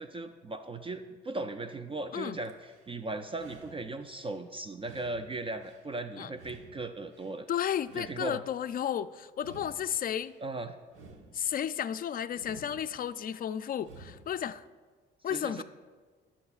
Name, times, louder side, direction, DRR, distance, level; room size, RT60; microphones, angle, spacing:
voice 1, 0.0-7.5 7.9-8.4 10.4-10.8 15.3-15.6, right 2 dB, 25° right, 7 dB, 0.4 m, -38 dB
sound 1, 2.4-2.9 3.3-4.4 4.8-5.9 6.3-7.4 7.8-8.9 9.3-10.4 10.8-11.9 12.3-13.3 13.8-14.4, right 2 dB, 85° right, 1.2 m, -54 dB
voice 2, 7.5-10.3 11.3-14.7 15.2-15.6, left 9 dB, 45° left, 13 dB, 0.4 m, -33 dB
17.5 x 7.1 x 2.4 m, 1.5 s
cardioid pair, 90°, 20 cm